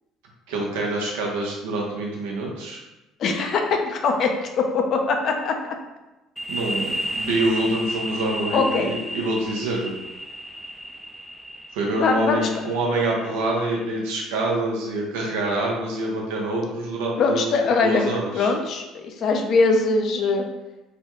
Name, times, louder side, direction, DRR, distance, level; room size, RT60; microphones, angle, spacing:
voice 1, 0.5-2.8 6.5-9.9 11.7-17.6 17.8-18.5, right 2 dB, 90° right, -2 dB, 0.7 m, -26 dB
voice 2, 3.2-5.5 8.5-8.9 11.9-12.5 17.2-20.4, left 4 dB, 55° left, 4 dB, 0.5 m, -22 dB
sound 1, 6.4-13.8, equal, ahead, 0.4 m, -33 dB
3.3 x 2.2 x 2.9 m, 1.0 s
supercardioid pair, 85°, 0 cm